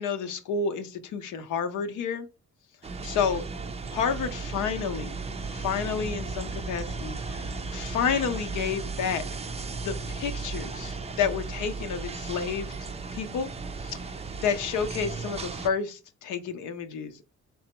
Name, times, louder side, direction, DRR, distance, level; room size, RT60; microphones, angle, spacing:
voice 1, 0.0-2.3 3.0-3.4 3.9-5.2 5.5-9.3 9.8-12.7 13.1-13.5 13.8-14.0 14.4-17.2, left 6 dB, 80° left, 7 dB, 0.6 m, -30 dB
sound 1, 2.8-15.7, right 4 dB, 20° right, 0.4 m, -35 dB
3.9 x 3.3 x 2.9 m, 0.30 s
cardioid pair, 90°, 30 cm